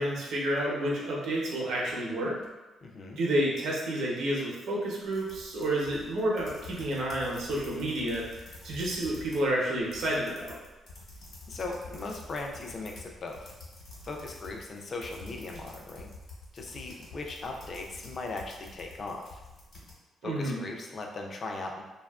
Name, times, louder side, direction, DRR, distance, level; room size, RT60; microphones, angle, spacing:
voice 1, 0.0-2.4 3.2-10.6 20.2-20.6, right 1 dB, 80° right, -4 dB, 0.7 m, -30 dB
voice 2, 2.8-3.2 11.5-13.5 14.0-16.1 16.5-19.4 20.2-21.8, left 3 dB, 40° left, 1 dB, 0.3 m, -38 dB
sound 1, 5.1-9.5 9.7-19.9, left 2 dB, 55° left, 0.9 m, -48 dB
2.7 x 2.3 x 2.3 m, 1.1 s
cardioid pair, 135°, 0 cm